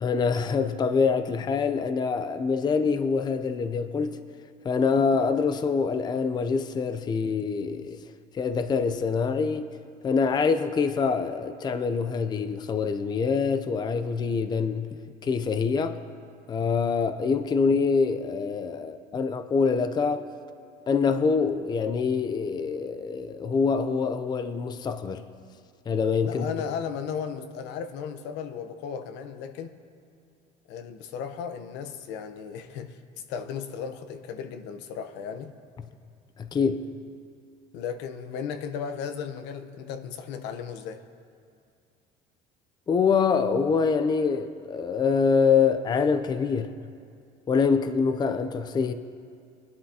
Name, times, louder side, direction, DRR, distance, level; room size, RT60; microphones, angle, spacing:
voice 1, 0.0-4.2 4.6-8.0 8.3-9.7 10.0-15.0 15.2-16.0 16.5-20.3 20.9-25.3 25.9-26.4 36.4-36.9 42.9-46.7 47.5-48.9, left 5 dB, 25° left, 0.5 m, -25 dB
voice 2, 26.2-29.7 30.7-33.0 33.3-35.5 37.7-41.0, left 7 dB, 75° left, 0.9 m, -35 dB
21.5 x 11.0 x 2.8 m
cardioid pair, 120°, 18 cm